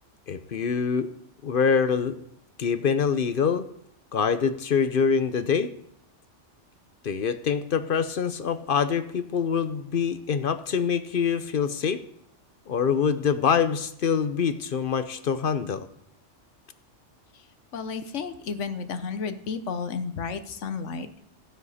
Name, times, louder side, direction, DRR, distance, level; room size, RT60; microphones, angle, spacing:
voice 1, 0.3-1.1 1.4-2.2 2.6-3.7 4.1-5.7 7.0-12.0 12.7-15.9, left 6 dB, 55° left, 11 dB, 0.8 m, -25 dB
voice 2, 17.7-21.1, left 5 dB, 80° left, 11 dB, 1.2 m, -32 dB
15.0 x 9.9 x 4.2 m, 0.72 s
omnidirectional pair, 1.2 m